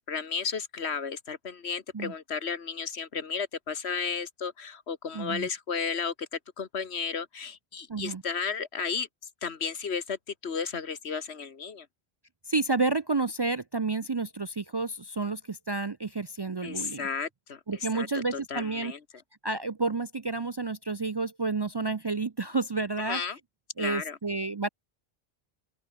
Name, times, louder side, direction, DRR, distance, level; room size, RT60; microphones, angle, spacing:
voice 1, 0.0-9.1 9.4-11.9 16.6-17.6 17.9-19.0 23.0-23.4 23.8-24.2, left 6 dB, 90° left, 1.7 m, -33 dB
voice 2, 5.1-5.5 7.9-8.2 12.5-17.1 17.7-18.9 19.4-23.2 23.8-24.7, right 3 dB, 35° right, 0.4 m, -30 dB
open air
omnidirectional pair, 1.1 m